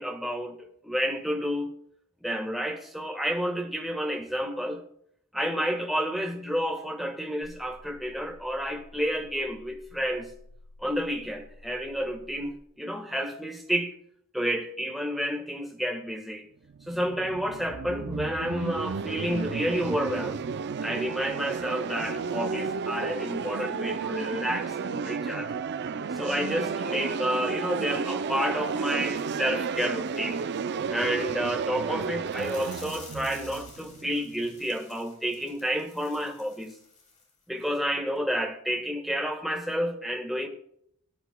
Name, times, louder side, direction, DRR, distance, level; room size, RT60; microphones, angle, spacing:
voice 1, 0.0-1.7 2.2-4.8 5.3-10.3 10.8-13.9 14.3-16.5 16.9-20.4 20.8-25.5 26.1-30.4 30.9-36.7 37.5-40.5, equal, ahead, 1.5 m, -30 dB
sound 1, 7.4-12.5, left 1 dB, 65° left, 3.8 m, -52 dB
sound 2, 16.7-34.5, right 5 dB, 50° right, 0.4 m, -32 dB
sound 3, 32.3-37.3 37.6-37.8 38.2-38.3, left 4 dB, 35° left, 3.3 m, -50 dB
19.0 x 10.0 x 2.3 m
head